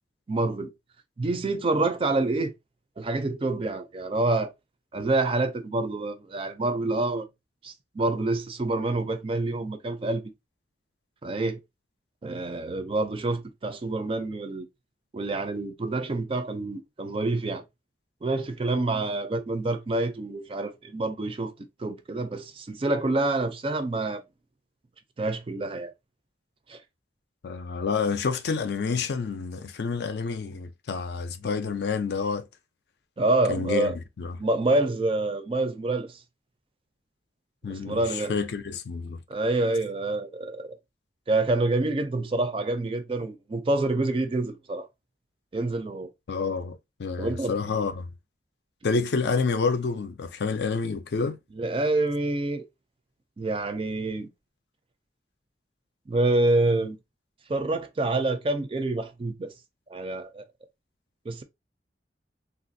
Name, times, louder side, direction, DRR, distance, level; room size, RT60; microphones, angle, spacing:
voice 1, 0.3-0.7 1.2-2.5 3.0-4.5 4.9-7.3 7.6-10.2 11.2-11.6 12.2-14.7 15.1-17.6 18.2-21.5 21.8-24.2 25.2-25.9 26.7-26.8 33.2-33.9 34.4-36.2 37.8-38.3 39.3-40.8 41.3-44.9 45.5-46.1 47.2-47.5 51.5-52.7 53.4-54.3 56.1-57.0 57.5-59.5 59.9-60.4 61.3-61.4, right 2 dB, 30° right, 0.4 m, -27 dB
voice 2, 27.4-32.5 33.5-34.4 37.6-39.2 46.3-48.1 48.8-51.4, left 4 dB, 65° left, 0.4 m, -28 dB
3.3 x 2.4 x 2.5 m
head